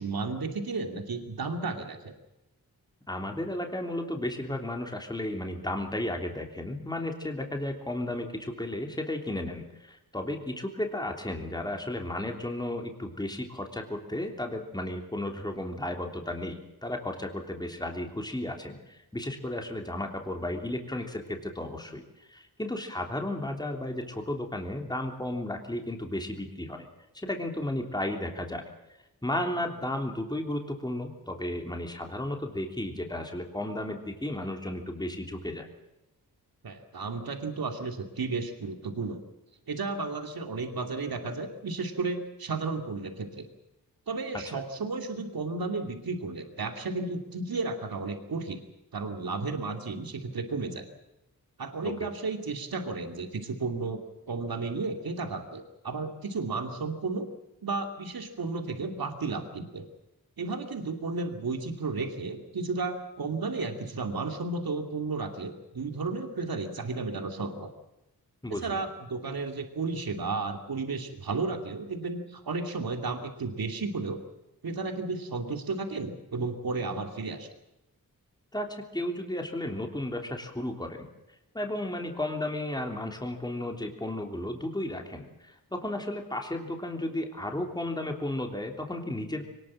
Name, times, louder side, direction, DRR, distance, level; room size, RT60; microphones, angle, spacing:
voice 1, 0.0-2.1 36.6-39.2 39.7-43.5 44.1-48.6 48.9-50.8 51.6-54.0 54.3-57.3 57.6-59.9 60.4-67.7 68.5-74.2 74.6-77.5, right 3 dB, 75° right, 5 dB, 2.7 m, -33 dB
voice 2, 3.1-26.8 27.1-28.6 29.2-35.7 51.8-52.1 68.4-68.8 78.5-81.1 81.5-89.4, left 1 dB, 10° left, 3 dB, 3.3 m, -34 dB
23.0 x 20.0 x 7.6 m, 0.93 s
wide cardioid pair, 75°, 36 cm